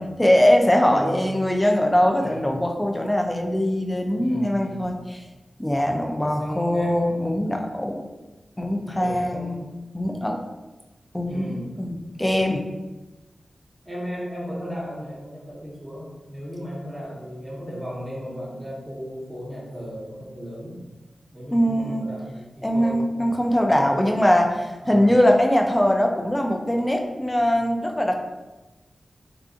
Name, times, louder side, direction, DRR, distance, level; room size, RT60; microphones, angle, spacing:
voice 1, 0.0-5.0 5.6-8.0 8.6-9.6 9.9-10.4 11.1-12.6 21.5-22.1 22.6-28.1, equal, 10° left, 2 dB, 0.3 m, -21 dB
voice 2, 0.9-1.2 2.1-2.5 4.1-4.9 6.4-7.4 8.8-9.7 11.2-11.8 13.8-20.8 21.3-23.0 24.8-25.2, equal, 15° right, -7 dB, 1.1 m, -35 dB
3.7 x 2.4 x 2.4 m, 1.1 s
wide cardioid pair, 125°, 0 cm